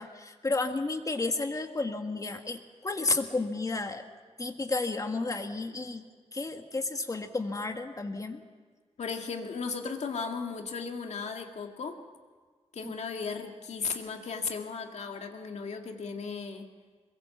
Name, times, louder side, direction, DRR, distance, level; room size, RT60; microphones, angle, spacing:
voice 1, 0.0-4.0 4.4-6.0 6.3-8.4 12.8-12.9, left 3 dB, 30° left, 6 dB, 1.7 m, -32 dB
voice 2, 9.0-12.0 12.7-16.7, left 5 dB, 70° left, 3 dB, 2.2 m, -36 dB
22.5 x 22.5 x 7.2 m, 1.5 s
wide cardioid pair, 110°, 12 cm